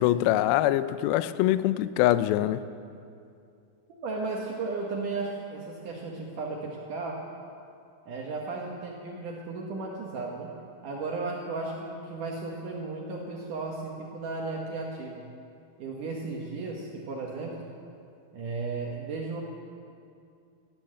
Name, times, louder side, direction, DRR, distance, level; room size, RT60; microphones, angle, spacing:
voice 1, 0.0-2.6, left 14 dB, 85° left, 14 dB, 2.2 m, -24 dB
voice 2, 4.0-7.2 8.1-10.5 10.8-15.3 15.8-17.7 18.3-19.4, right 3 dB, 65° right, -1 dB, 2.4 m, -35 dB
17.5 x 10.5 x 7.7 m, 2.5 s
omnidirectional pair, 4.8 m